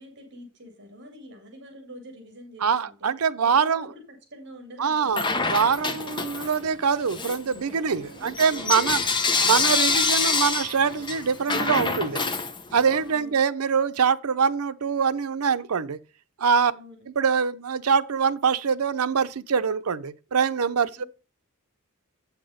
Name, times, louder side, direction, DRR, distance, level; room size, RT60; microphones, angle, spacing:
voice 1, 0.0-5.3 8.0-8.3 13.1-13.4 16.7-17.0 21.0-21.1, equal, 55° right, 2.5 m, -46 dB
voice 2, 2.6-3.8 4.8-9.0 9.4-12.2 12.7-16.0 16.4-16.7 17.2-21.0, right 6 dB, 90° right, 0.6 m, -24 dB
Bell / Coin (dropping), 5.1-6.7 7.1-13.0, left 4 dB, 20° left, 1.0 m, -26 dB
8.4 x 6.0 x 5.0 m
head